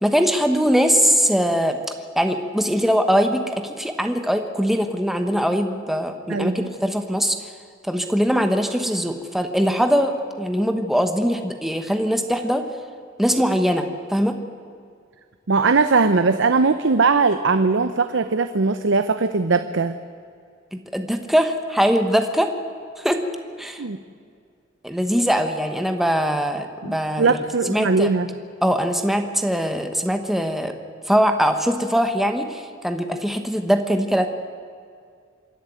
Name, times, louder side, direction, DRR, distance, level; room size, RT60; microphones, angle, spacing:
voice 1, 0.0-1.8 2.2-7.5 7.8-12.6 13.2-14.4 20.7-22.5 23.0-23.2 23.6-23.8 24.8-27.4 27.7-28.1 28.6-30.7 31.1-34.3, equal, ahead, 6 dB, 1.0 m, -21 dB
voice 2, 6.3-6.7 15.5-19.9 23.8-24.0 26.8-28.3, right 4 dB, 65° right, 10 dB, 0.7 m, -20 dB
26.0 x 11.0 x 9.2 m, 2.2 s
head